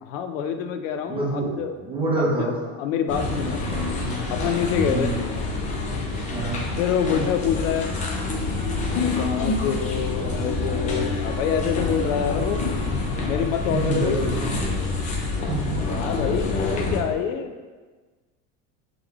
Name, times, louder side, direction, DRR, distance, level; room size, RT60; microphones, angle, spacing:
voice 1, 0.0-1.7 2.3-2.4 2.8-3.6 4.3-5.1 6.8-7.9 8.9-12.6 13.2-14.2 15.9-17.5, left 8 dB, 85° left, 7 dB, 0.5 m, -26 dB
voice 2, 1.1-2.5 4.9-5.1 6.3-6.6 13.7-14.5 15.5-15.8, right 3 dB, 15° right, -5 dB, 0.8 m, -26 dB
sound 1, 3.1-17.0, left 3 dB, 20° left, 0.3 m, -27 dB
3.5 x 3.3 x 3.4 m, 1.4 s
supercardioid pair, 140°, 38 cm